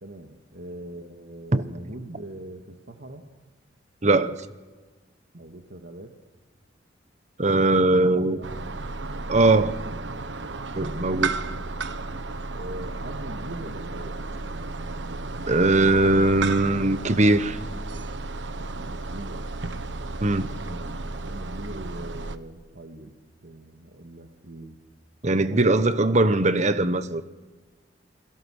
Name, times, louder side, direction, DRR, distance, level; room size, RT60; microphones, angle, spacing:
voice 1, 0.0-3.2 5.3-6.1 7.9-8.5 10.8-11.6 12.5-14.2 18.5-19.4 20.6-23.1 23.4-24.8, right 1 dB, 65° right, 2.1 m, -42 dB
voice 2, 4.0-4.3 7.4-8.4 9.3-9.8 10.7-11.3 15.5-17.6 20.2-20.5 25.2-27.2, right 2 dB, 40° right, 1.2 m, -20 dB
sound 1, 8.4-22.4, right 3 dB, 80° right, 1.2 m, -33 dB
29.5 x 22.0 x 6.5 m
head